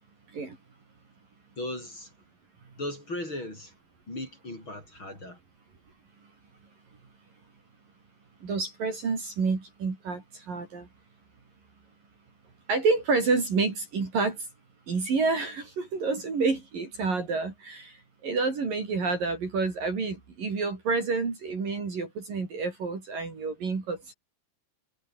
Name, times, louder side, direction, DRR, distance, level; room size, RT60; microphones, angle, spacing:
voice 1, 1.6-2.1 2.8-3.7 4.1-5.4, left 1 dB, 25° left, 8.1 m, -37 dB
voice 2, 8.4-10.9 12.7-14.5 14.9-18.0 18.2-24.1, right 4 dB, 45° right, 6.3 m, -29 dB
omnidirectional pair, 5.8 m